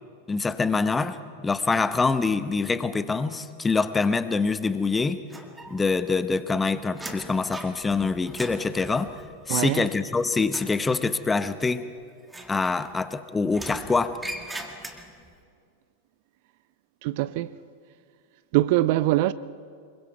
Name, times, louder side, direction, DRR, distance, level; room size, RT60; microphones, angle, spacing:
voice 1, 0.3-1.2 1.4-5.2 5.7-9.1 9.5-11.8 12.5-14.2, left 4 dB, 15° left, 0.9 m, -25 dB
sound 1, 5.3-6.1 6.3-10.1 10.4-10.8 12.2-13.1 13.5-15.3, right 1 dB, 5° right, 1.9 m, -40 dB
voice 2, 9.5-9.9 17.0-17.5 18.5-19.3, right 16 dB, 50° right, 0.5 m, -23 dB
25.5 x 22.5 x 4.7 m
figure-of-eight pair, 90°, 0 cm